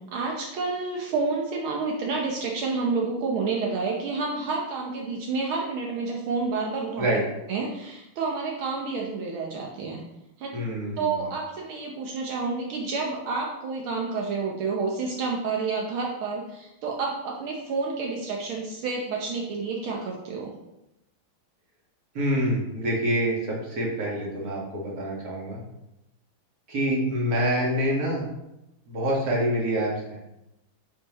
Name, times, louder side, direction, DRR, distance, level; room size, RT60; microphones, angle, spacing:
voice 1, 0.0-7.1 7.5-10.0 10.4-10.5 11.0-20.5, right 4 dB, 75° right, -1 dB, 1.6 m, -29 dB
voice 2, 10.5-11.1 22.1-25.6 26.7-28.2 28.9-30.2, equal, 45° right, -3 dB, 2.0 m, -26 dB
6.5 x 6.1 x 3.0 m, 0.90 s
omnidirectional pair, 2.3 m